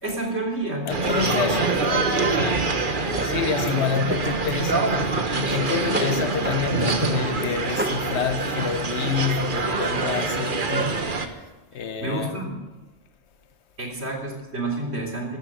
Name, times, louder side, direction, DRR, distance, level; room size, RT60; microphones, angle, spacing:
voice 1, 0.0-1.5 3.0-3.2 12.0-12.6 13.8-15.4, right 2 dB, 70° right, 3.9 m, -30 dB
voice 2, 0.9-11.1 11.7-12.4, left 7 dB, 70° left, 1.2 m, -28 dB
sound 1, 0.9-11.3, right 4 dB, 50° right, 1.4 m, -25 dB
Drawer open or close, 3.1-3.3 3.9-4.8 5.1-6.6 6.9-7.1 7.4-8.1, right 1 dB, 10° right, 0.9 m, -31 dB
14.0 x 13.5 x 6.4 m
omnidirectional pair, 1.2 m